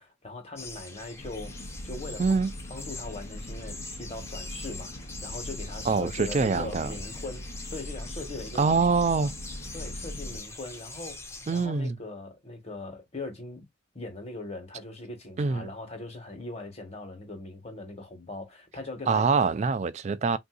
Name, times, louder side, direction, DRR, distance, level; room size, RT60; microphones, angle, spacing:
voice 1, 0.0-2.4 2.7-8.9 9.7-13.6 13.9-19.3, left 2 dB, 35° left, 1.2 m, -40 dB
sound 1, 0.6-11.7, left 3 dB, 15° left, 0.6 m, -43 dB
sound 2, 1.2-10.4, left 1 dB, 50° left, 0.8 m, -41 dB
voice 2, 2.2-2.5 5.9-6.9 8.6-9.3 11.5-12.0 15.4-15.7 19.1-20.4, right 4 dB, 35° right, 0.3 m, -24 dB
3.6 x 2.6 x 2.3 m
head